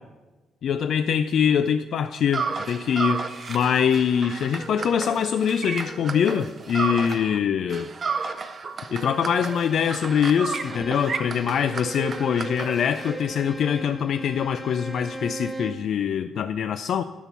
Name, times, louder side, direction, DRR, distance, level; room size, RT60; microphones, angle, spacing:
voice 1, 0.6-7.9 8.9-17.0, left 8 dB, 65° left, 10 dB, 0.3 m, -24 dB
sound 1, 2.3-7.4 7.7-13.2, right 5 dB, 45° right, 0.6 m, -32 dB
Bowed string instrument, 9.1-15.9, right 1 dB, 10° left, 0.7 m, -39 dB
10.5 x 4.4 x 7.0 m, 1.2 s
cardioid pair, 90°, 0 cm